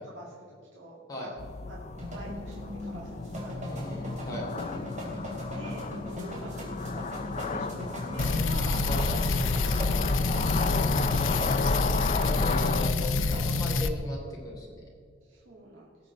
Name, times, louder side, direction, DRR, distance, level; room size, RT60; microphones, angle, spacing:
voice 1, 0.0-1.4 1.7-5.2 5.5-8.9 9.3-10.9 12.3-12.5 15.3-15.9, right 1 dB, 70° right, -5 dB, 2.1 m, -47 dB
sound 1, 1.4-12.9, left 4 dB, 35° left, 0.5 m, -34 dB
sound 2, 2.0-13.7, left 1 dB, 40° right, 3.2 m, -38 dB
voice 2, 3.6-4.5 8.9-9.2 10.5-11.6 12.4-14.7, left 1 dB, 20° left, -3 dB, 3.4 m, -38 dB
sound 3, 8.2-13.9, left 3 dB, 85° left, 0.7 m, -27 dB
19.0 x 7.5 x 4.2 m, 2.3 s
head